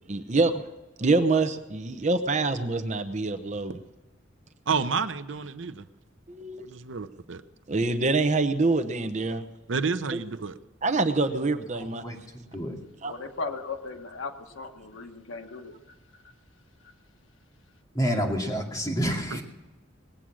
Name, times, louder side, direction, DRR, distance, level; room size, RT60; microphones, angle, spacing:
voice 1, 0.1-0.6 1.0-3.8 6.3-6.6 7.7-9.4 10.1-10.2 10.8-12.0 13.0-13.1, right 3 dB, 40° right, 0.8 m, -25 dB
voice 2, 4.7-5.9 6.6-7.4 9.7-10.5 18.1-18.2, right 5 dB, 75° right, 0.7 m, -30 dB
voice 3, 11.8-12.8 17.9-19.4, equal, 20° left, 2.6 m, -29 dB
voice 4, 13.1-15.7, left 4 dB, 85° left, 1.3 m, -37 dB
20.5 x 8.6 x 6.3 m
head